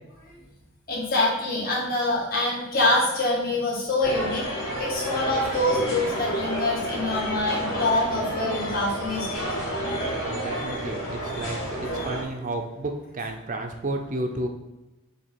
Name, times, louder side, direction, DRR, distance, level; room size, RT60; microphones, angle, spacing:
voice 1, 0.9-9.4, left 2 dB, 45° left, -4 dB, 1.6 m, -25 dB
sound 1, 4.0-12.2, right 1 dB, 80° left, 2.1 m, -30 dB
voice 2, 10.2-14.5, right 2 dB, 40° right, 4 dB, 0.6 m, -32 dB
7.3 x 2.9 x 4.4 m, 1.0 s
head